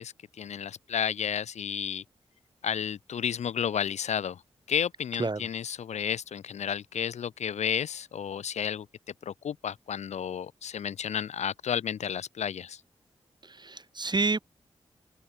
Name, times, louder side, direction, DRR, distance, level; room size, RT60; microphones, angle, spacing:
voice 1, 0.0-2.0 2.6-4.4 4.7-8.9 9.2-12.8, left 8 dB, 85° left, 1.3 m, -32 dB
voice 2, 13.4-14.4, right 3 dB, 40° right, 4.5 m, -29 dB
cardioid pair, 40°, 11 cm